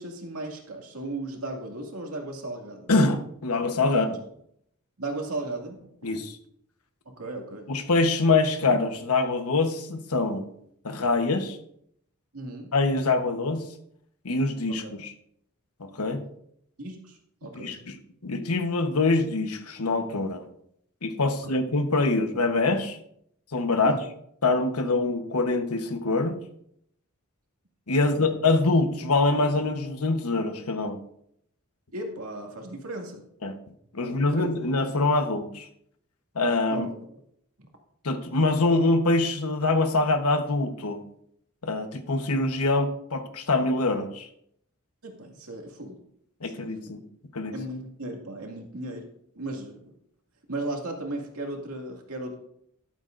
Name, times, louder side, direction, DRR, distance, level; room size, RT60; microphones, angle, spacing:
voice 1, 0.0-2.9 3.8-4.1 5.0-5.8 7.1-7.7 12.3-12.7 14.8-15.0 16.8-17.8 21.4-21.6 23.8-24.0 24.8-24.9 28.0-28.3 31.9-33.3 34.0-34.5 36.7-36.8 37.1-37.2 45.0-46.0 46.4-46.7 47.5-49.1 49.4-49.9 50.5-52.3, right 2 dB, 75° right, 1 dB, 2.2 m, -36 dB
voice 2, 2.9-4.2 6.0-6.4 7.7-10.5 10.8-11.6 12.7-13.6 14.2-15.1 15.8-16.2 17.5-18.0 18.2-20.5 21.0-23.0 23.5-24.0 24.4-26.4 27.9-31.0 33.4-33.6 33.9-35.7 36.3-36.9 38.0-41.0 41.6-44.3 46.4-47.0 47.3-47.5, left 3 dB, 80° left, 7 dB, 1.1 m, -24 dB
12.5 x 11.5 x 2.6 m, 0.72 s
head